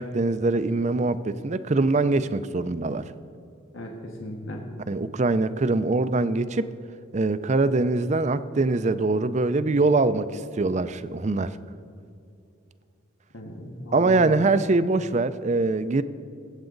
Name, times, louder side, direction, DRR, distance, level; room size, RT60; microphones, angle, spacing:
voice 1, 0.0-3.1 4.9-6.7 7.1-11.6 13.9-16.0, right 3 dB, 35° right, 13 dB, 0.4 m, -23 dB
voice 2, 3.7-4.6 13.3-14.4, left 1 dB, 85° left, 1 dB, 1.6 m, -37 dB
22.5 x 8.2 x 3.9 m, 2.6 s
head